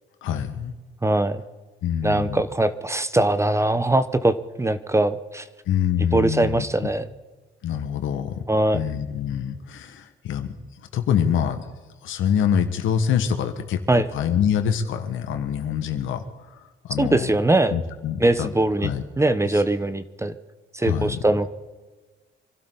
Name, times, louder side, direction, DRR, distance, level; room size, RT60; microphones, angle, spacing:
voice 1, 0.2-0.8 1.8-2.4 5.7-6.6 7.6-8.4 8.7-10.5 10.8-11.6 12.0-13.8 14.1-16.2 16.5-17.3 17.7-18.5 18.8-19.0 19.4-19.6 20.8-21.2, left 8 dB, 80° left, 7 dB, 1.7 m, -25 dB
voice 2, 1.0-1.4 2.0-5.4 6.1-7.1 8.5-8.8 13.9-14.0 17.0-17.8 18.2-18.9 19.2-20.3 20.7-21.5, right 2 dB, 15° right, 13 dB, 0.8 m, -21 dB
25.5 x 12.5 x 4.0 m, 1.3 s
cardioid pair, 90°, 20 cm